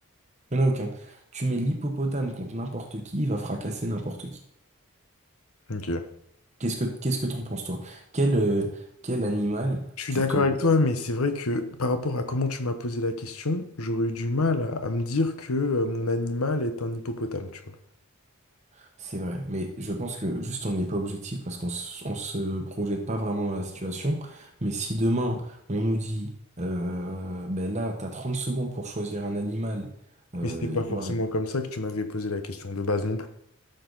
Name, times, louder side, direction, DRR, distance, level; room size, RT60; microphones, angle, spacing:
voice 1, 0.5-4.4 6.6-10.5 18.8-26.3 26.6-29.9 30.3-31.1, right 1 dB, 30° right, 3 dB, 1.0 m, -29 dB
voice 2, 5.7-6.1 10.0-17.7 30.4-33.3, left 2 dB, 75° left, 9 dB, 1.0 m, -27 dB
13.0 x 6.6 x 4.0 m, 0.72 s
head